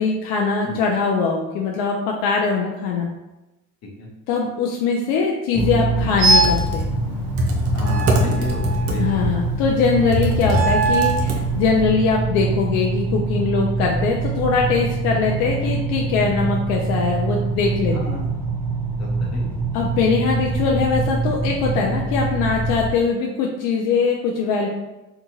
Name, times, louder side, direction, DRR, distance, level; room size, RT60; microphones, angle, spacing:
voice 1, 0.0-3.1 4.3-6.8 9.0-18.1 19.7-24.7, left 5 dB, 75° left, 0 dB, 0.5 m, -21 dB
sound 1, 5.5-22.9, right 3 dB, 5° left, 0.7 m, -25 dB
Computer keyboard, 6.2-11.8, equal, 40° right, 0.6 m, -24 dB
sound 2, 6.2-6.7 7.8-9.1 10.4-11.3, right 3 dB, 80° right, 0.5 m, -21 dB
voice 2, 7.7-9.3 17.9-18.2 19.0-19.4, left 1 dB, 45° left, 0 dB, 0.9 m, -32 dB
2.8 x 2.4 x 2.6 m, 0.99 s
supercardioid pair, 90°, 36 cm